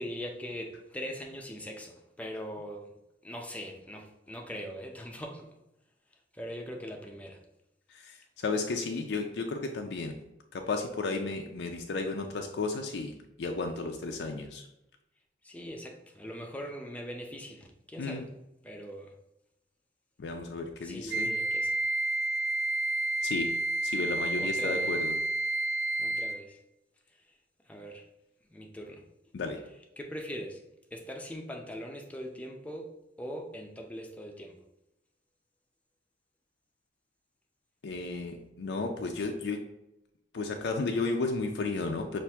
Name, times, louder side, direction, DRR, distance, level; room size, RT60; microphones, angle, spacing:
voice 1, 0.0-3.0 3.2-5.5 6.3-7.4 15.4-18.3 18.6-19.2 20.8-21.8 24.4-25.0 26.0-26.6 27.1-27.4 27.6-28.1 28.5-29.0 30.0-30.6 30.9-34.6, equal, 10° left, 0.5 m, -41 dB
voice 2, 7.9-10.2 10.5-13.1 13.4-14.7 18.0-18.2 20.2-21.3 23.2-23.5 23.8-25.1 29.3-29.6 37.8-39.6 40.3-42.2, left 3 dB, 75° left, 0.4 m, -33 dB
Wind instrument woodwind instrument, 21.1-26.5, right 2 dB, 90° right, 0.5 m, -30 dB
5.7 x 2.6 x 3.4 m
head